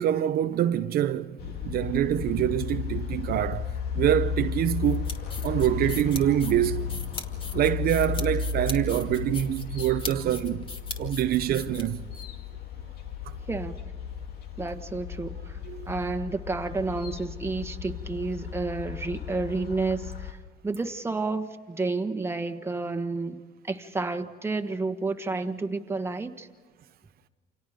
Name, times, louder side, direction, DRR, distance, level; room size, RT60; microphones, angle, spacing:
voice 1, 0.0-3.7 3.9-5.0 5.4-6.8 7.5-10.6 11.0-12.0 13.2-13.3 15.6-15.9, right 11 dB, 65° right, 0.7 m, -25 dB
sound 1, 1.4-20.3, left 6 dB, 70° left, 2.0 m, -34 dB
sound 2, 4.8-12.2, left 3 dB, 30° left, 2.4 m, -39 dB
voice 2, 14.6-15.6 15.9-20.4 20.6-26.5, right 3 dB, 15° right, 1.5 m, -30 dB
29.0 x 27.0 x 5.1 m
cardioid pair, 110°, 17 cm